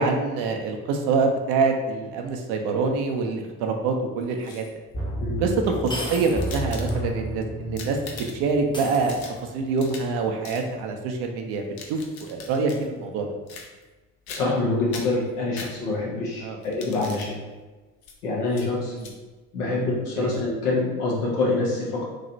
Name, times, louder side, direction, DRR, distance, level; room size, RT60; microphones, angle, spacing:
voice 1, 0.0-4.7 5.4-9.2 9.5-13.3 16.4-16.6 18.8-19.1 20.2-20.3, right 4 dB, 60° right, 3 dB, 0.6 m, -25 dB
sound 1, 4.2-4.9 5.7-7.3 7.6-8.6 8.9-10.2 10.4-10.7 11.5-12.8 13.5-14.0 14.3-14.6 14.9-16.1 16.6-17.3 18.0-18.2 18.5-18.7 19.0-19.1, left 4 dB, 55° left, 0.7 m, -41 dB
sound 2, 4.5-4.6 5.9-6.6 7.0-7.1 8.7-9.6, left 1 dB, 10° left, 0.6 m, -36 dB
sound 3, 4.9-9.6 10.0-10.1, equal, 30° left, 1.0 m, -32 dB
voice 2, 14.3-17.5 18.2-18.9 19.5-22.1, left 2 dB, 80° left, -4 dB, 1.0 m, -26 dB
3.1 x 2.8 x 2.7 m, 1.2 s
hypercardioid pair, 55°, 45 cm